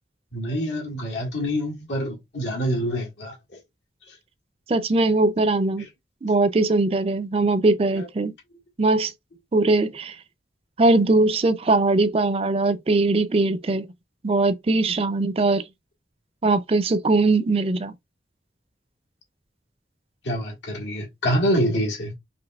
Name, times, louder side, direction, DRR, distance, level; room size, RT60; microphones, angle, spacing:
voice 1, 0.3-3.4 7.9-8.1 14.9-15.0 20.2-22.1, equal, 85° left, 1.8 m, -26 dB
voice 2, 4.7-5.8 6.2-8.3 8.8-9.1 9.5-10.2 10.8-13.9 14.2-15.6 16.4-17.9, right 2 dB, 35° right, 0.4 m, -20 dB
5.1 x 3.0 x 2.3 m
head